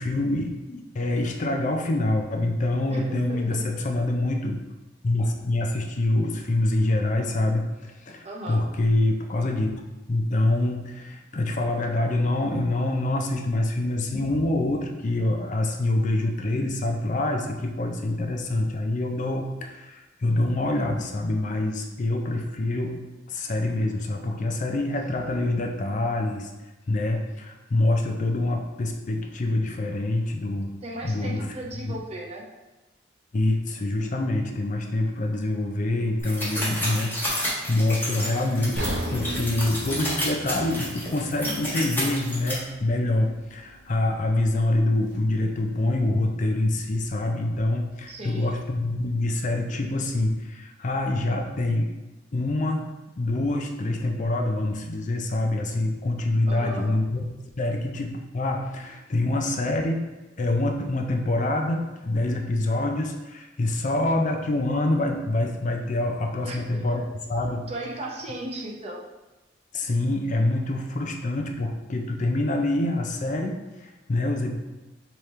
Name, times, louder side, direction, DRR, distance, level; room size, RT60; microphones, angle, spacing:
voice 1, 0.0-4.6 5.0-9.8 10.1-26.5 26.9-30.7 31.0-31.5 31.8-31.9 33.3-51.9 52.3-52.9 53.2-57.2 57.6-60.0 60.4-67.0 67.3-67.7 69.7-74.6, left 2 dB, 45° left, 3 dB, 0.5 m, -26 dB
voice 2, 2.9-3.6 8.2-8.6 30.8-32.5 48.1-48.5 56.5-56.9 66.4-67.1 67.7-69.0, right 1 dB, 35° right, -1 dB, 0.7 m, -36 dB
sound 1, 36.2-42.5, left 1 dB, 10° left, 1.1 m, -30 dB
sound 2, 38.7-42.8 43.2-43.3 43.9-44.0, right 1 dB, 70° right, 0.7 m, -35 dB
5.0 x 3.0 x 3.2 m, 1.1 s
head